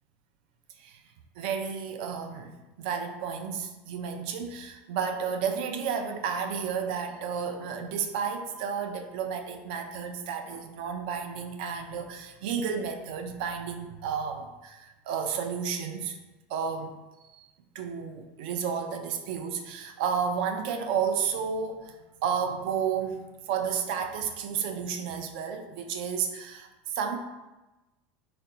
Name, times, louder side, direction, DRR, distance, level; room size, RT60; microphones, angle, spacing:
voice 1, 1.4-16.2 16.5-16.9 17.2-17.4 17.7-27.2, right 6 dB, 65° right, 5 dB, 0.4 m, -32 dB
4.1 x 2.2 x 3.8 m, 1.1 s
supercardioid pair, 165°, 5 cm